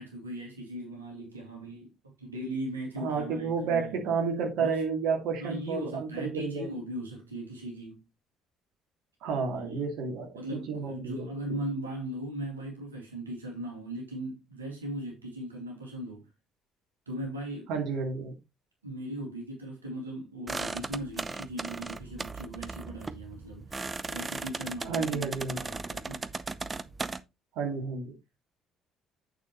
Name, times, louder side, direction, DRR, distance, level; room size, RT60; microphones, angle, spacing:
voice 1, 0.0-4.0 4.6-4.8 5.4-8.0 9.5-9.8 10.4-16.3 17.1-17.7 18.8-26.3, right 1 dB, 85° right, 2.5 m, -38 dB
voice 2, 3.0-6.7 9.2-11.3 17.7-18.3 24.8-25.6 27.5-28.1, right 5 dB, 60° right, 2.5 m, -31 dB
sound 1, 20.5-27.2, right 3 dB, 25° right, 0.7 m, -37 dB
8.9 x 6.5 x 3.1 m
figure-of-eight pair, 50°, 0 cm